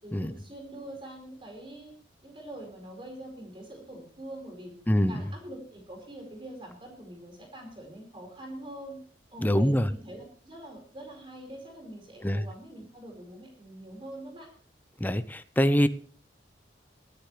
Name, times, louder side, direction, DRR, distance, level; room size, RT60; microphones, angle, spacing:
voice 1, 0.0-1.9 2.2-4.7 5.1-9.0 9.3-14.5, right 1 dB, 30° right, 2 dB, 4.6 m, -44 dB
voice 2, 4.9-5.2 9.4-9.9 12.2-12.4 15.0-15.9, equal, 10° left, 12 dB, 0.6 m, -24 dB
23.5 x 10.0 x 3.2 m, 0.42 s
head